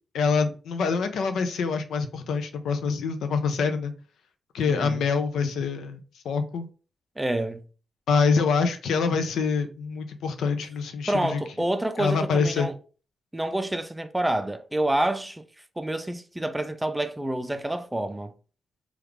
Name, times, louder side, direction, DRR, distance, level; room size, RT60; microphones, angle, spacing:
voice 1, 0.1-3.9 4.5-6.7 8.1-11.4 12.0-12.7, left 5 dB, 85° left, 0.4 m, -25 dB
voice 2, 4.7-5.0 7.2-7.6 11.1-12.7 13.3-15.4 15.8-18.3, right 1 dB, 15° right, 0.5 m, -28 dB
3.4 x 2.4 x 3.2 m
cardioid pair, 60°, 0 cm